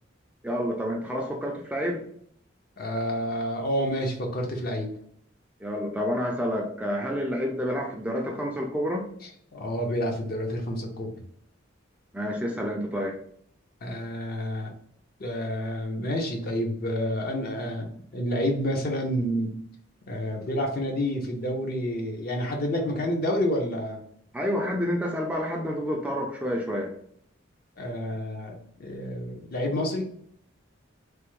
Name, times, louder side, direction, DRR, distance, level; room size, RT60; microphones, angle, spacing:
voice 1, 0.4-2.0 5.6-9.1 12.1-13.2 24.3-26.9, equal, 5° right, 0 dB, 0.3 m, -29 dB
voice 2, 2.8-4.9 9.2-11.2 13.8-14.7 15.2-17.9 18.1-19.5 20.1-24.0 27.8-28.5 28.8-30.1, equal, 50° left, 2 dB, 0.6 m, -29 dB
3.3 x 2.0 x 3.0 m, 0.67 s
head